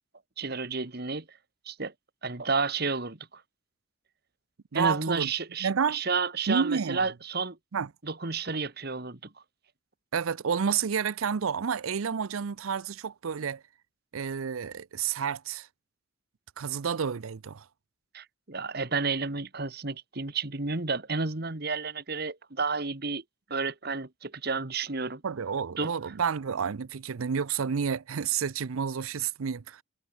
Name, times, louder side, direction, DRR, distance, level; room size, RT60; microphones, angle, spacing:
voice 1, 0.4-1.3 1.7-1.9 2.2-3.4 4.7-7.6 8.0-9.2 18.1-23.2 23.5-25.2 25.8-25.9, right 4 dB, 50° right, 1.7 m, -31 dB
voice 2, 4.7-5.3 5.6-6.0 6.5-7.0 7.7-7.9 10.1-13.6 14.1-15.7 16.6-17.6 25.2-29.8, right 6 dB, 85° right, 0.6 m, -30 dB
head